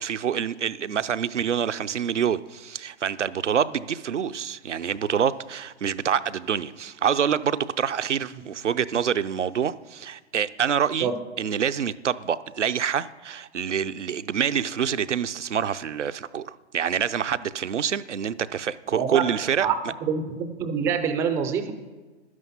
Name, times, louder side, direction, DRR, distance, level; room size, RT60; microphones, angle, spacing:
voice 1, 0.0-11.1 11.4-19.7, right 8 dB, 90° right, 13 dB, 0.6 m, -26 dB
voice 2, 18.9-19.2 19.6-19.8 20.0-21.7, right 7 dB, 10° right, 8 dB, 0.3 m, -25 dB
12.0 x 9.7 x 5.6 m, 1.3 s
hypercardioid pair, 125°, 35 cm